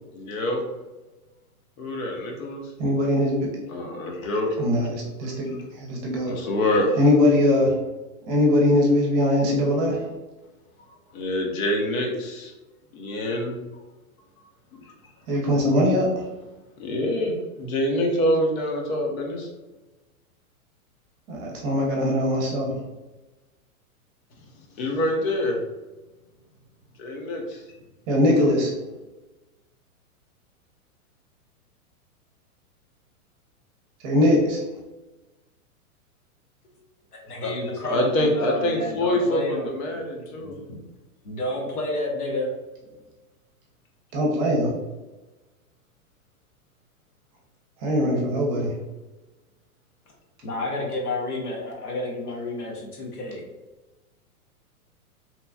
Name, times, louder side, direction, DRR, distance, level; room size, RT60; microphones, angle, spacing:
voice 1, 0.1-0.6 1.8-2.6 3.7-4.5 6.3-7.0 11.1-12.5 12.9-13.5 16.8-19.5 24.8-25.6 27.0-27.6 37.4-37.5 37.9-40.6, left 1 dB, 65° left, 1 dB, 0.9 m, -25 dB
voice 2, 2.8-3.5 4.6-6.3 7.0-7.7 8.3-10.0 15.3-16.2 21.3-22.7 28.1-28.7 34.0-34.6 44.1-44.7 47.8-48.7, left 1 dB, 30° right, -2 dB, 0.7 m, -21 dB
voice 3, 37.2-39.7 40.3-40.5 41.2-42.5 50.4-53.4, left 2 dB, 90° left, -1 dB, 1.1 m, -30 dB
3.0 x 2.4 x 2.3 m, 1.1 s
hypercardioid pair, 135°, 44 cm